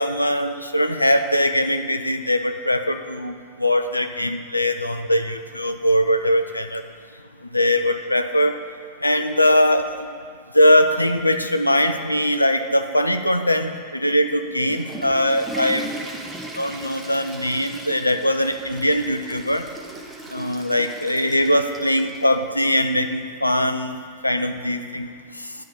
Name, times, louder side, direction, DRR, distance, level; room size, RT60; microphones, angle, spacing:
voice 1, 0.0-6.8 7.5-8.6 9.0-10.1 10.5-15.8 16.6-19.6 20.3-24.0 24.2-25.1, left 1 dB, 85° left, 8 dB, 0.5 m, -21 dB
Water / Toilet flush, 14.5-22.3, right 1 dB, 10° right, 1.2 m, -37 dB
10.5 x 4.1 x 6.8 m, 2.1 s
figure-of-eight pair, 90°, 0 cm